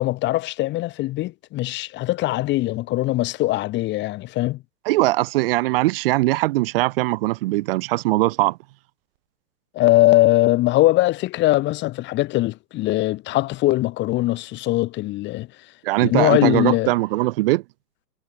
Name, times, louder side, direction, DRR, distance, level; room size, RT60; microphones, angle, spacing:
voice 1, 0.0-4.6 9.7-15.5 16.0-16.9, left 17 dB, 20° left, 3.1 m, -21 dB
voice 2, 4.8-8.6 15.8-17.6, right 19 dB, 35° right, 3.0 m, -21 dB
figure-of-eight pair, 120°, 50 cm